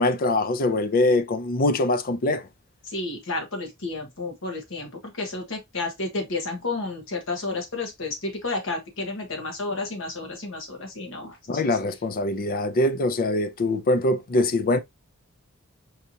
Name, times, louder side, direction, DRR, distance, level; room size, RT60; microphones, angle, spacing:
voice 1, 0.0-2.5 11.5-14.8, left 2 dB, 45° left, 0.5 m, -23 dB
voice 2, 2.8-11.8, left 3 dB, 65° left, 1.4 m, -31 dB
4.7 x 2.8 x 2.7 m
head